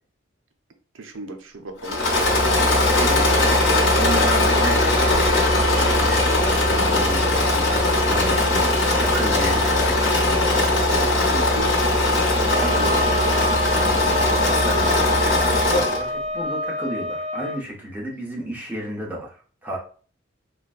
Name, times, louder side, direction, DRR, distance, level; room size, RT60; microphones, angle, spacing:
voice 1, 0.9-2.0 11.3-11.7 12.7-13.3, right 3 dB, 90° right, 6 dB, 0.6 m, -35 dB
Engine / Mechanisms, 1.8-16.1, left 2 dB, 85° left, 1.0 m, -19 dB
voice 2, 2.8-3.3 3.8-10.7 12.5-12.9 13.3-19.8, right 1 dB, 10° right, -4 dB, 0.8 m, -33 dB
Wind instrument woodwind instrument, 12.4-17.6, left 1 dB, 35° right, 1.4 m, -28 dB
3.9 x 2.2 x 2.5 m, 0.41 s
head